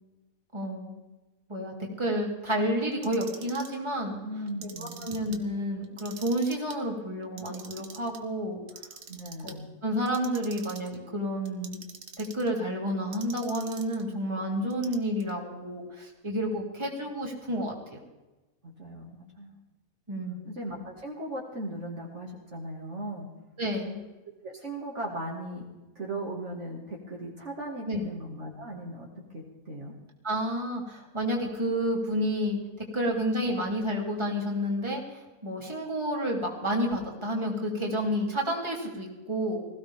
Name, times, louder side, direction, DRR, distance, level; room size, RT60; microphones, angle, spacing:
voice 1, 0.5-1.0 1.5-4.2 4.6-8.6 9.4-9.5 9.8-11.8 12.2-18.0 20.1-20.4 23.6-24.0 27.9-28.0 30.2-39.6, equal, 20° right, -1 dB, 3.2 m, -30 dB
Clock, 2.9-3.8 4.5-5.4 5.8-6.8 7.2-8.2 8.7-9.6 10.0-11.0 11.4-12.5 13.1-14.0 14.7-15.3, right 6 dB, 70° right, 1.7 m, -45 dB
voice 2, 4.2-5.0 9.1-9.7 18.6-19.5 20.4-23.3 24.4-25.7 26.0-29.1 29.3-29.9, right 1 dB, 50° right, -2 dB, 2.5 m, -38 dB
20.5 x 16.0 x 3.6 m, 1.1 s
omnidirectional pair, 1.6 m